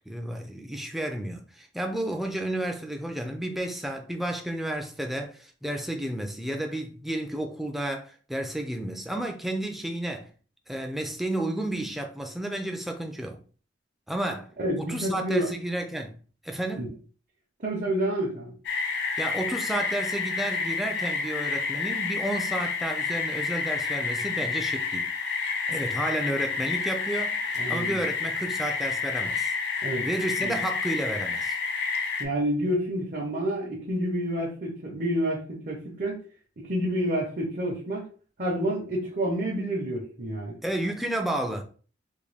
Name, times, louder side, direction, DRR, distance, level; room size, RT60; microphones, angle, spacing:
voice 1, 0.1-10.3 10.7-13.4 14.1-14.5 14.8-17.0 19.2-25.1 25.7-27.4 27.7-29.5 30.0-31.6 40.6-41.6, right 1 dB, ahead, 0.4 m, -31 dB
voice 2, 14.6-15.5 16.8-16.9 17.6-18.5 27.6-28.0 29.8-30.1 30.4-30.6 32.2-35.4 35.7-36.2 36.6-38.1 38.4-40.6, right 1 dB, 45° right, 0.8 m, -28 dB
sound 1, 18.6-32.2, left 5 dB, 60° left, 0.6 m, -29 dB
3.6 x 2.3 x 3.3 m
head